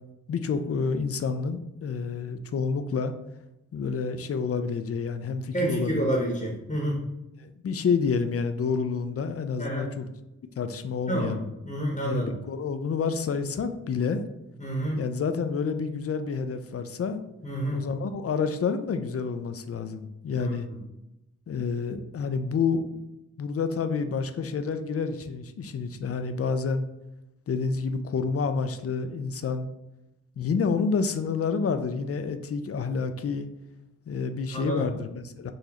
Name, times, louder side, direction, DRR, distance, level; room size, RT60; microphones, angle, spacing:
voice 1, 0.3-3.1 3.7-6.1 7.4-10.1 10.6-11.4 12.0-14.2 15.0-17.2 17.7-20.7 21.5-23.0 23.4-26.9 27.5-29.7 30.4-33.5 34.1-35.5, left 5 dB, 45° left, 9 dB, 0.4 m, -29 dB
voice 2, 5.5-7.0 9.6-9.9 11.1-12.3 14.6-15.0 17.4-17.9 20.4-20.8 34.5-34.9, right 1 dB, 20° left, -1 dB, 0.9 m, -29 dB
3.9 x 2.6 x 2.9 m, 0.94 s
cardioid pair, 50°, 34 cm